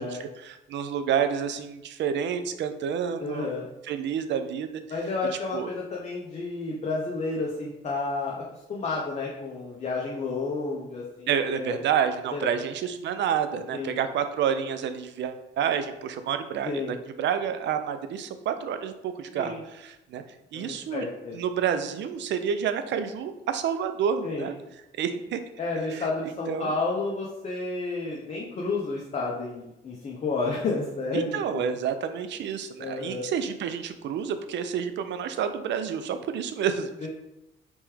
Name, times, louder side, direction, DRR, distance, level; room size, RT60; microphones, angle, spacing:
voice 1, 0.0-3.5 3.8-4.8 5.5-5.7 11.3-20.2 20.5-21.1 21.3-24.5 25.0-25.4 25.9-26.7 31.1-37.1, right 8 dB, 65° right, 9 dB, 0.4 m, -29 dB
voice 2, 3.2-3.7 4.9-8.4 8.7-11.3 11.6-11.8 12.3-12.5 13.7-14.0 16.6-17.0 19.3-19.6 20.5-21.4 24.2-24.5 25.6-31.3 31.5-31.7 32.8-33.3 37.0-37.1, left 3 dB, 35° left, -3 dB, 0.7 m, -31 dB
3.4 x 3.0 x 3.2 m, 0.90 s
cardioid pair, 90°, 20 cm